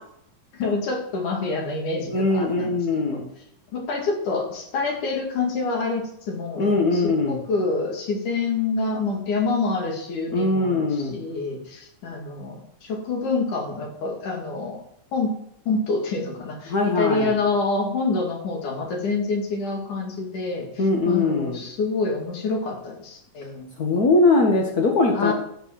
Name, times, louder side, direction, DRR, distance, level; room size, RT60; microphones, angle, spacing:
voice 1, 0.5-3.2 3.7-14.8 15.1-15.4 15.7-23.7 25.1-25.3, left 3 dB, 75° left, 0 dB, 4.0 m, -27 dB
voice 2, 2.1-3.3 6.6-7.4 10.3-11.2 16.7-17.3 20.8-21.6 23.8-25.3, left 3 dB, 50° left, 0 dB, 1.0 m, -21 dB
13.5 x 6.9 x 7.5 m, 0.74 s
omnidirectional pair, 3.6 m